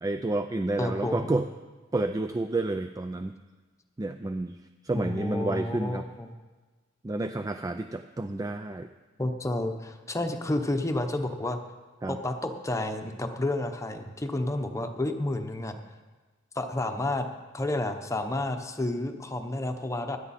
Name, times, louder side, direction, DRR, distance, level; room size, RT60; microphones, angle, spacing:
voice 1, 0.0-1.5 1.9-3.3 4.0-4.6 4.8-6.1 7.0-8.9 12.0-12.2, right 2 dB, 20° right, 9 dB, 0.4 m, -30 dB
voice 2, 0.8-1.3 4.9-6.3 9.2-11.6 12.1-15.8 16.5-17.3 17.5-20.2, left 1 dB, 15° left, 6 dB, 0.9 m, -30 dB
17.0 x 11.5 x 4.3 m, 1.3 s
head